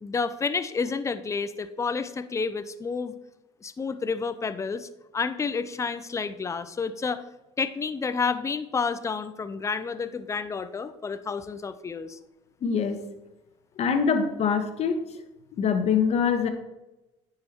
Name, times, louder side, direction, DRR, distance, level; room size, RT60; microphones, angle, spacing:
voice 1, 0.0-3.1 3.6-7.2 7.6-12.2, left 5 dB, 20° left, 12 dB, 0.6 m, -30 dB
voice 2, 12.6-13.0 13.8-15.0 15.6-16.5, left 6 dB, 50° left, 7 dB, 1.4 m, -24 dB
9.6 x 5.7 x 4.5 m, 1.0 s
supercardioid pair, 90°, 14 cm